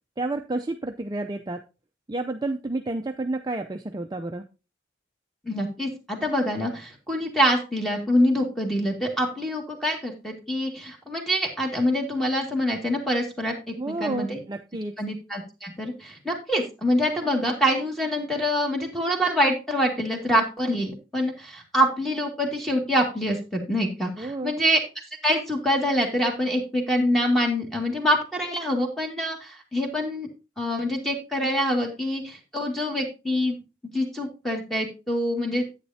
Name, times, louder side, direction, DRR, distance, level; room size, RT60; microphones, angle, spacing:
voice 1, 0.2-1.6 2.1-4.4 13.8-15.0 24.2-24.5, right 2 dB, 20° right, 5 dB, 0.5 m, -30 dB
voice 2, 5.5-14.4 15.0-24.8 25.2-30.3 30.6-33.6 33.9-35.6, equal, ahead, 1 dB, 2.1 m, -25 dB
10.5 x 8.8 x 2.8 m, 0.30 s
head